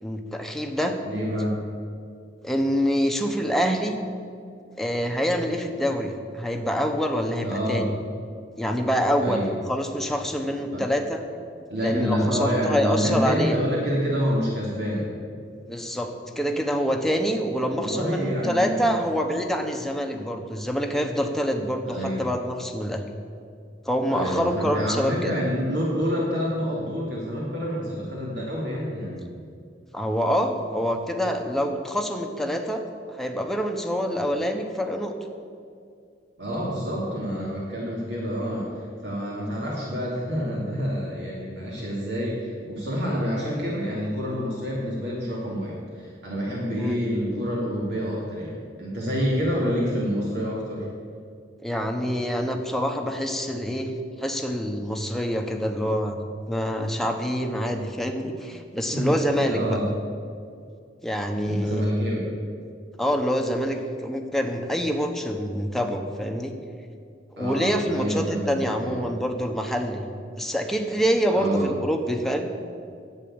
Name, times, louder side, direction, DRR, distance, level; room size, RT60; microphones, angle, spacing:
voice 1, 0.0-1.0 2.4-3.9 4.8-7.9 8.6-11.2 11.8-13.6 15.7-23.0 23.8-25.3 29.9-32.8 33.1-35.1 46.8-47.0 51.6-53.9 54.2-56.2 56.5-59.8 61.0-61.9 63.0-66.5 67.4-70.1 70.4-72.5, equal, ahead, 3 dB, 1.1 m, -26 dB
voice 2, 1.0-1.6 7.4-7.8 9.2-9.5 10.7-10.8 11.7-15.1 17.7-19.0 21.9-22.3 24.1-29.2 36.4-50.9 58.9-59.1 59.5-59.9 61.4-62.3 67.4-69.1 71.3-71.7, equal, 65° right, -4 dB, 2.7 m, -27 dB
11.0 x 8.3 x 8.9 m, 2.3 s
head